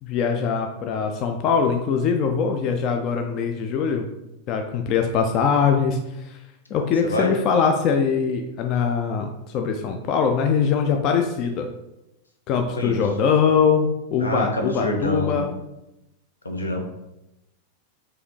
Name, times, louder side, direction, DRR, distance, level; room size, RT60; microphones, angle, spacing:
voice 1, 0.0-4.1 4.5-6.4 6.7-11.7 12.5-15.5, left 6 dB, 40° left, 5 dB, 0.3 m, -22 dB
voice 2, 6.7-7.3 12.7-13.0 14.2-15.5 16.4-16.8, left 1 dB, 75° left, 2 dB, 0.6 m, -27 dB
4.7 x 2.5 x 3.1 m, 0.92 s
figure-of-eight pair, 90°, 0 cm